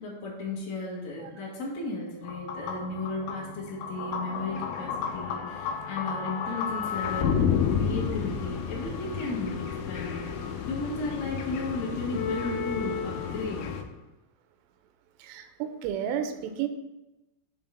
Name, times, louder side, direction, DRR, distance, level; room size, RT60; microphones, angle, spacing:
voice 1, 0.0-7.5 7.8-13.7, left 2 dB, 65° left, -6 dB, 1.6 m, -35 dB
sound 1, 2.2-13.8, left 7 dB, 85° left, 2.6 m, -31 dB
voice 2, 15.2-16.7, right 9 dB, 85° right, 8 dB, 3.1 m, -32 dB
7.6 x 3.6 x 5.8 m, 0.98 s
omnidirectional pair, 5.6 m